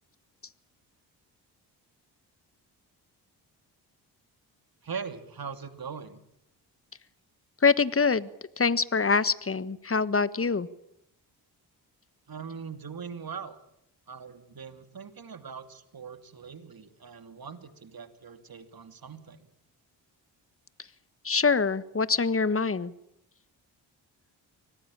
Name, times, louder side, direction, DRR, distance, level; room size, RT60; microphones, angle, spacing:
voice 1, 4.8-6.2 12.3-13.6 14.1-19.5, right 6 dB, 45° right, 10 dB, 2.9 m, -41 dB
voice 2, 7.6-8.3 8.6-10.7 21.2-22.9, left 5 dB, 30° left, 16 dB, 1.5 m, -24 dB
25.0 x 18.5 x 8.8 m, 0.80 s
hypercardioid pair, 40°, 48 cm